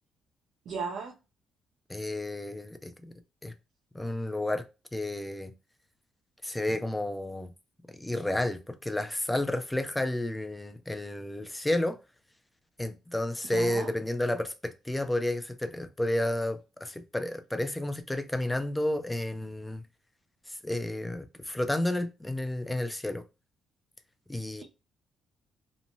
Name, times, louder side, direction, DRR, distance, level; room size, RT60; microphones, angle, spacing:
voice 1, 0.7-1.1 13.5-13.9, right 5 dB, 75° right, 0.5 m, -35 dB
voice 2, 1.9-3.1 3.4-3.5 3.9-4.6 4.9-5.5 6.4-7.5 7.9-12.0 12.8-19.8 20.5-23.2 24.3-24.6, left 1 dB, 10° left, 0.4 m, -31 dB
3.0 x 2.1 x 2.6 m
cardioid pair, 90°, 0 cm